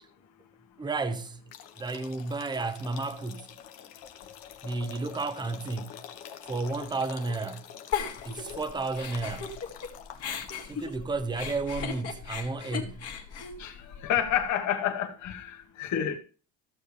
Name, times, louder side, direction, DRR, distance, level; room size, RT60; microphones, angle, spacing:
voice 1, 0.8-1.4 1.8-3.5 4.6-6.0 6.4-7.7 8.2-9.5 10.7-13.1, right 3 dB, 15° right, 0.8 m, -32 dB
sound 1, 1.5-10.8, left 10 dB, 85° left, 1.2 m, -47 dB
Giggle, 7.9-9.9 10.2-14.4, left 7 dB, 50° left, 2.2 m, -36 dB
voice 2, 13.6-16.2, left 10 dB, 65° left, 1.9 m, -29 dB
15.0 x 7.0 x 3.3 m
cardioid pair, 125°, 32 cm